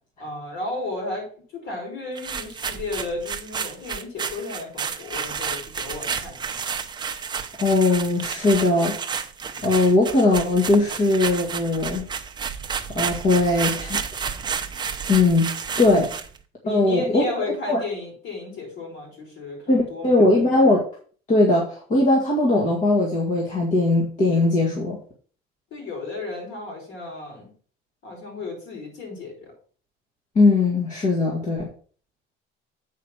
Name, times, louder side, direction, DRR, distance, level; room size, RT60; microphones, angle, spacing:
voice 1, 0.2-1.3 1.5-6.4 16.6-20.2 25.7-27.5 28.0-29.5, left 3 dB, 60° left, -1 dB, 5.4 m, -33 dB
sound 1, 2.2-16.4, right 6 dB, 20° right, 0.7 m, -31 dB
voice 2, 7.6-9.0 9.6-12.0 13.0-14.0 15.1-15.5 15.8-16.1 16.7-17.2 17.7-17.8 19.7-20.8 21.3-25.0 30.4-31.7, left 2 dB, 35° left, -2 dB, 2.0 m, -19 dB
8.3 x 5.0 x 5.9 m, 0.43 s
cardioid pair, 160°, 21 cm